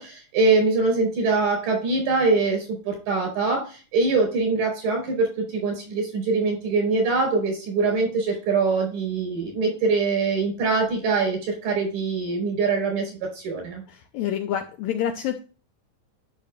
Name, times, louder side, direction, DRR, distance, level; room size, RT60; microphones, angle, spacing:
voice 1, 0.0-13.8, right 3 dB, 80° right, 3 dB, 6.6 m, -23 dB
voice 2, 13.9-15.4, left 10 dB, 90° left, 6 dB, 1.6 m, -28 dB
12.0 x 6.1 x 2.4 m, 0.35 s
omnidirectional pair, 4.0 m